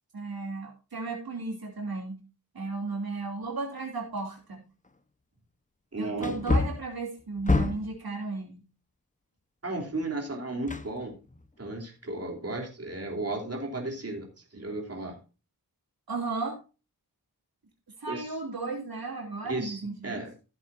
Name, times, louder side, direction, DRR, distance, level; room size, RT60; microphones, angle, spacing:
voice 1, 0.1-2.2 2.5-4.6 6.0-8.6 16.1-16.6 18.0-20.2, right 3 dB, 75° right, 0 dB, 2.9 m, -34 dB
Wood, 4.2-4.3 4.9-5.0 6.2-8.0 10.7-11.5 11.8-11.9, left 3 dB, 20° left, 1.0 m, -28 dB
voice 2, 5.9-6.4 9.6-11.1 11.6-15.2 18.1-18.3 19.4-20.3, right 2 dB, 40° right, 1 dB, 3.4 m, -34 dB
15.5 x 8.1 x 2.6 m, 0.31 s
wide cardioid pair, 80°, 37 cm